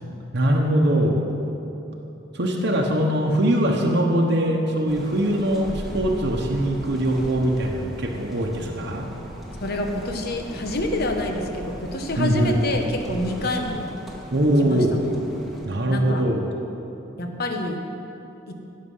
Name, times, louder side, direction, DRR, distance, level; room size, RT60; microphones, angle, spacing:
voice 1, 0.3-1.2 2.3-9.1 12.2-12.6 14.3-15.0 15.7-16.5, right 1 dB, 60° right, -1 dB, 1.0 m, -22 dB
sound 1, 4.9-15.7, equal, ahead, 1.4 m, -38 dB
voice 2, 9.6-13.9 14.6-15.2 15.9-16.3 17.2-17.8 18.5-18.6, left 1 dB, 55° left, 4 dB, 1.1 m, -27 dB
16.5 x 6.6 x 5.6 m, 3.0 s
head